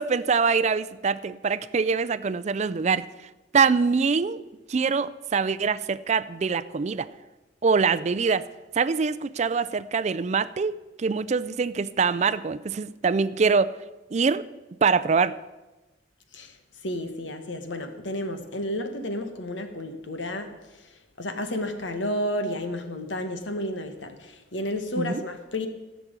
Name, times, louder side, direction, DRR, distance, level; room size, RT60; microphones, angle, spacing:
voice 1, 0.0-3.1 3.5-4.4 4.7-7.1 7.6-8.5 8.7-13.8 14.1-14.5 14.8-15.4 25.0-25.2, right 5 dB, 40° right, 15 dB, 0.4 m, -24 dB
voice 2, 16.8-25.7, left 1 dB, 90° left, 7 dB, 1.4 m, -32 dB
14.5 x 6.1 x 8.0 m, 1.1 s
head